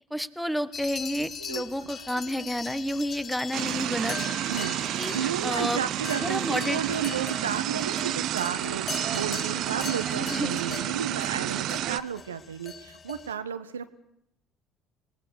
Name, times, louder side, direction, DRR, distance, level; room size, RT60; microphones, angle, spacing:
voice 1, 0.1-4.2 4.5-4.7 5.0-5.8 6.1-6.8 10.1-10.6, equal, ahead, 14 dB, 1.5 m, -30 dB
sound 1, 0.7-13.3, left 6 dB, 40° left, 1.8 m, -40 dB
sound 2, 3.5-12.0, right 13 dB, 60° right, 0.9 m, -30 dB
voice 2, 5.1-13.9, right 8 dB, 90° right, 11 dB, 1.1 m, -33 dB
26.5 x 19.0 x 6.5 m, 0.78 s
hypercardioid pair, 60°, 0 cm